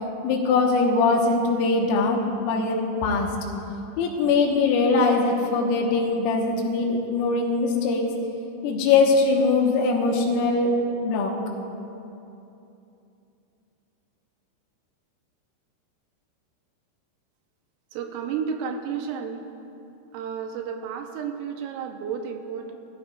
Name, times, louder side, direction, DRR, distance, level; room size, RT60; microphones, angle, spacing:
voice 1, 0.2-2.2 2.5-3.3 4.0-8.0 8.6-10.7 11.0-11.3, left 4 dB, 90° left, 0 dB, 4.0 m, -21 dB
voice 2, 17.9-19.5 20.1-22.7, right 7 dB, 85° right, 4 dB, 3.3 m, -32 dB
20.5 x 13.5 x 2.4 m, 2.8 s
omnidirectional pair, 5.9 m